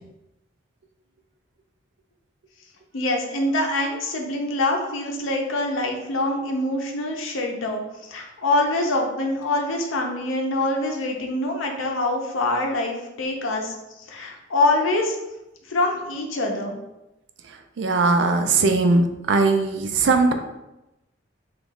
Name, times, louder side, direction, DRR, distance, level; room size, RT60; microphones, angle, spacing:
voice 1, 2.9-15.2 15.7-16.8, left 2 dB, 85° left, 1 dB, 0.6 m, -25 dB
voice 2, 17.8-19.0 19.3-20.3, right 3 dB, 65° right, 6 dB, 0.4 m, -19 dB
3.0 x 2.4 x 3.5 m, 0.95 s
head